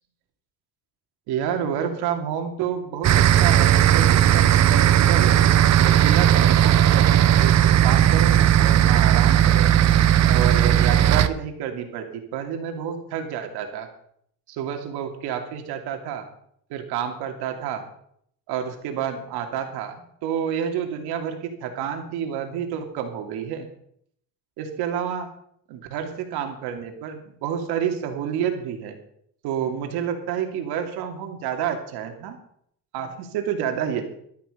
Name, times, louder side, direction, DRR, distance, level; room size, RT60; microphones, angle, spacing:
voice 1, 1.3-5.4 5.8-9.7 10.2-13.9 14.5-16.2 16.7-17.8 18.5-23.7 24.6-25.3 25.7-29.0 29.4-32.4 32.9-34.0, right 8 dB, 85° right, 5 dB, 2.8 m, -29 dB
sound 1, 3.0-11.3, right 11 dB, 45° right, 0.8 m, -16 dB
13.5 x 12.5 x 5.1 m, 0.68 s
cardioid pair, 130°, 38 cm